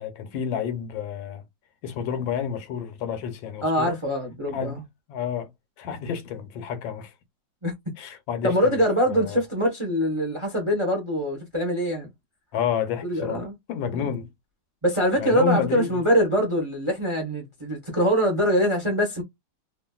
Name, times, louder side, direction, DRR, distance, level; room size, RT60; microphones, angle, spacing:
voice 1, 0.0-1.4 1.8-4.0 4.5-4.8 5.1-5.5 5.8-7.1 8.0-8.8 9.1-9.4 12.5-13.4 13.7-14.3 15.2-16.0, left 7 dB, 90° left, 1.5 m, -30 dB
voice 2, 3.6-4.8 7.6-7.7 8.4-12.1 13.0-13.5 14.8-19.2, equal, 30° right, 0.5 m, -23 dB
2.9 x 2.6 x 2.2 m
omnidirectional pair, 2.0 m